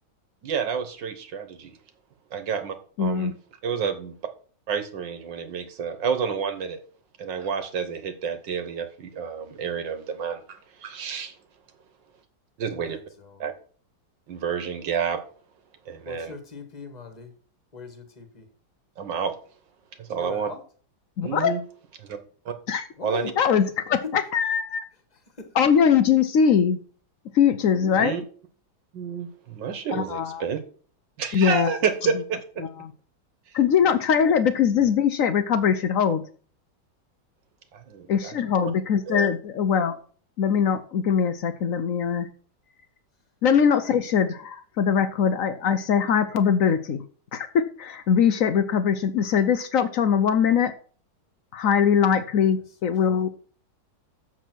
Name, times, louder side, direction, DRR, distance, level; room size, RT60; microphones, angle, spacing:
voice 1, 0.4-1.8 2.3-3.3 3.6-4.2 4.7-6.8 7.2-11.3 12.6-13.0 13.4-13.5 14.3-15.2 15.9-16.3 19.0-19.3 20.0-20.5 21.2-21.6 22.0-22.2 22.4-22.5 23.0-23.3 27.9-28.2 28.9-30.6 31.2-32.7 37.7-38.3 38.6-38.7 39.1-39.3, right 6 dB, 65° right, 9 dB, 1.7 m, -29 dB
voice 2, 3.0-3.3 21.2-21.5 22.7-22.8 23.4-24.8 25.6-26.8 27.3-28.2 29.9-30.4 31.3-31.7 33.5-36.2 38.1-40.0 40.4-42.3 43.4-47.0 47.3-50.7 51.5-53.3, left 7 dB, 75° left, 11 dB, 0.7 m, -21 dB
voice 3, 12.8-13.4 16.0-17.3 17.7-18.5 20.2-20.6 23.0-23.3 25.4-25.6 52.4-52.5 52.8-52.9, left 3 dB, 25° left, 7 dB, 1.4 m, -40 dB
7.2 x 7.0 x 6.1 m, 0.43 s
omnidirectional pair, 2.2 m